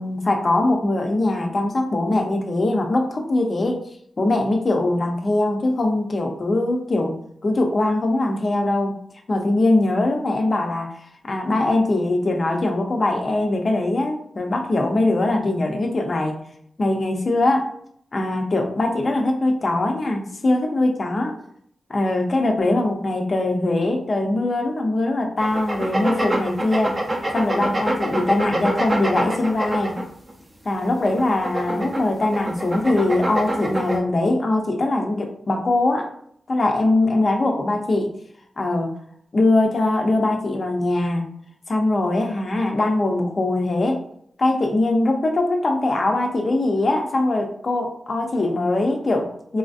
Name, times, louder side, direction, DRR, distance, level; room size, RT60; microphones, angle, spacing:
voice 1, 0.0-3.9 4.2-9.0 9.3-16.4 16.8-17.7 18.1-21.3 21.9-27.0 27.3-30.0 30.6-36.1 36.5-38.1 38.6-38.9 39.3-41.3 41.7-44.0 44.4-49.6, left 2 dB, 35° left, 3 dB, 0.5 m, -21 dB
sound 1, 25.4-30.3 30.9-34.0, right 1 dB, 25° right, 0.5 m, -25 dB
4.1 x 2.5 x 2.4 m, 0.66 s
wide cardioid pair, 175°, 0 cm